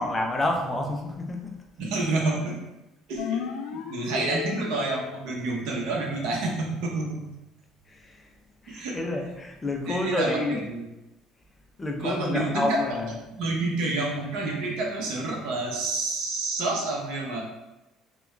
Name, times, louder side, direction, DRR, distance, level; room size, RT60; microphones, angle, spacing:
voice 1, 0.0-1.5 7.9-8.3 8.6-10.6 11.8-13.1, left 2 dB, 15° left, 1 dB, 0.4 m, -29 dB
voice 2, 1.8-2.6 3.1-7.2 8.7-9.0 9.9-10.9 12.0-12.8 13.4-17.4, right 2 dB, 70° right, -2 dB, 0.8 m, -29 dB
sound 1, 3.2-5.1, left 7 dB, 75° left, 0.3 m, -33 dB
3.4 x 2.2 x 3.1 m, 0.98 s
cardioid pair, 155°, 0 cm